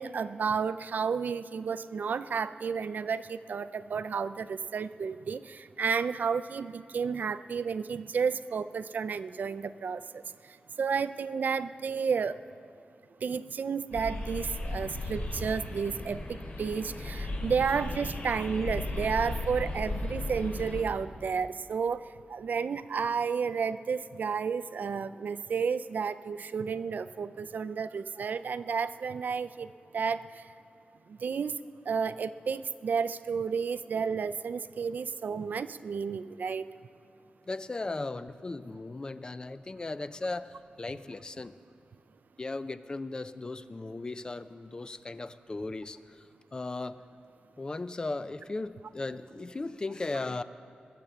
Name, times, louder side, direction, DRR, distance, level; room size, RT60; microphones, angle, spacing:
voice 1, 0.0-12.4 13.2-30.5 31.1-31.5 31.8-36.7, right 6 dB, 65° right, 14 dB, 0.4 m, -32 dB
sound 1, 13.9-20.8, left 2 dB, 85° left, 2.7 m, -36 dB
voice 2, 37.5-41.6 42.4-46.2 46.5-47.0 47.6-50.4, left 3 dB, 25° left, 13 dB, 0.4 m, -37 dB
21.5 x 7.6 x 6.8 m, 2.5 s
wide cardioid pair, 155°, 3 cm